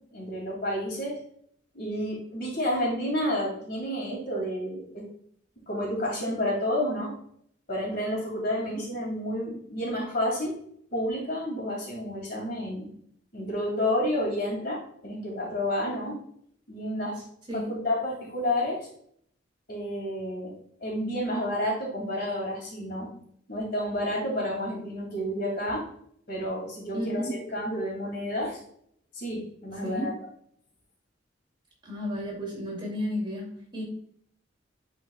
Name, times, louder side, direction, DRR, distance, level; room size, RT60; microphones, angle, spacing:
voice 1, 0.1-1.2 1.7-5.0 5.7-7.1 7.7-10.6 10.9-12.9 13.3-16.2 16.7-17.2 17.5-18.8 19.7-20.5 20.8-23.1 23.5-25.9 26.3-28.6 29.1-30.1, left 1 dB, 55° left, -2 dB, 2.5 m, -30 dB
voice 2, 26.9-27.3 29.8-30.1 31.8-33.8, equal, 25° right, -3 dB, 2.7 m, -32 dB
10.0 x 4.6 x 2.4 m, 0.65 s
head